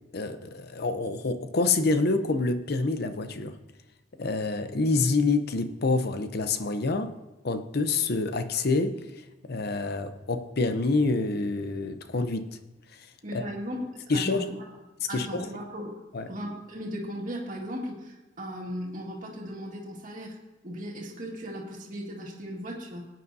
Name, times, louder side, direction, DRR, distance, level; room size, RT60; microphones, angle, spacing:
voice 1, 0.1-3.6 4.2-7.1 7.4-9.0 9.5-12.5 13.3-13.4 14.1-14.5 15.1-15.5 16.1-16.3, left 3 dB, 55° left, 0.7 m, -27 dB
voice 2, 13.2-14.7 15.1-15.9 16.3-20.4 20.6-23.1, equal, 45° right, 2.0 m, -37 dB
18.0 x 9.4 x 2.7 m
head